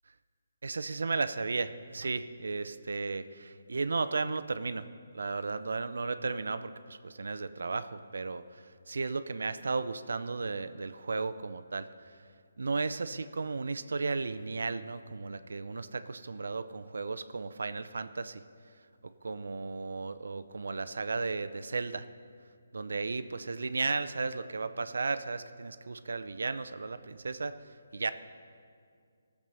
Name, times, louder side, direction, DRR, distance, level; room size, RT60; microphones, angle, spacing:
voice 1, 0.6-4.9 5.1-11.9 12.6-18.4 19.0-22.1 22.7-27.6 27.9-28.1, right 4 dB, 80° right, 12 dB, 0.5 m, -34 dB
16.0 x 7.4 x 5.5 m, 2.2 s
hypercardioid pair, 165°, 0 cm